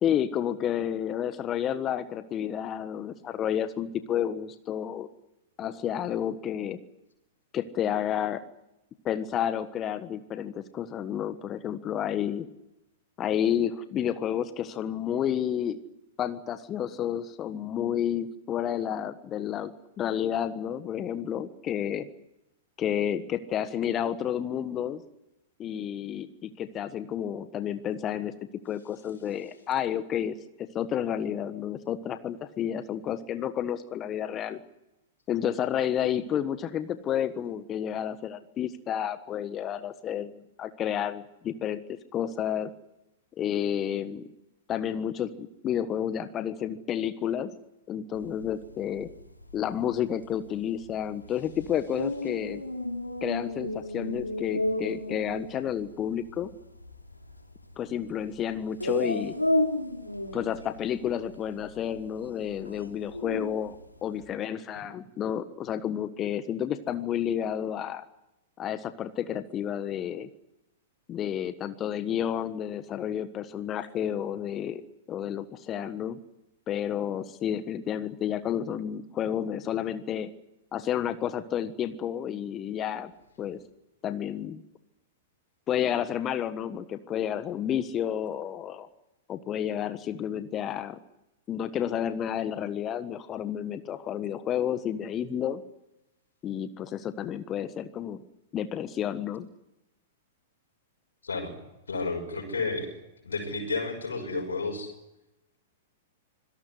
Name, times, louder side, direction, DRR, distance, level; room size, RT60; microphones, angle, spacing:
voice 1, 0.0-5.1 5.6-6.8 7.5-8.4 9.0-12.5 13.2-15.8 16.2-19.7 20.0-22.1 22.8-25.0 25.6-28.3 28.6-34.6 35.3-42.7 43.4-44.3 44.7-47.5 47.9-49.1 49.5-52.6 53.2-56.5 57.8-59.4 60.3-63.8 64.0-68.0 68.6-70.3 71.1-74.8 75.1-76.2 76.7-80.3 80.7-83.1 83.4-83.6 84.0-84.6 85.7-88.9 89.3-91.0 91.5-95.6 96.4-98.2 98.5-99.5, left 9 dB, 25° left, 12 dB, 1.3 m, -30 dB
sound 1, 48.1-64.2, left 1 dB, 85° left, 3.1 m, -33 dB
voice 2, 101.9-102.9 103.2-104.9, left 3 dB, 70° left, 3 dB, 6.2 m, -31 dB
25.5 x 18.0 x 9.7 m, 0.91 s
figure-of-eight pair, 100°, 0 cm